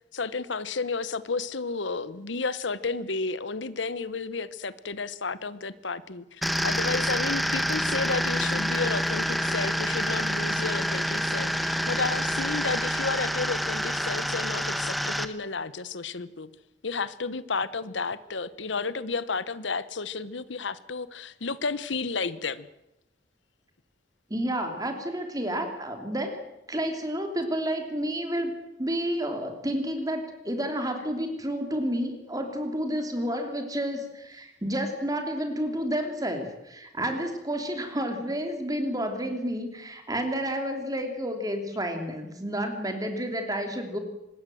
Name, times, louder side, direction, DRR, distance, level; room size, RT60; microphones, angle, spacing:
voice 1, 0.1-16.5 16.8-22.7, left 4 dB, 75° left, 16 dB, 1.0 m, -32 dB
sound 1, 6.4-15.3, equal, ahead, 1.2 m, -27 dB
voice 2, 24.3-26.4 26.7-28.5 28.8-44.0, equal, 20° right, 5 dB, 3.0 m, -30 dB
25.0 x 20.5 x 7.8 m, 0.89 s
head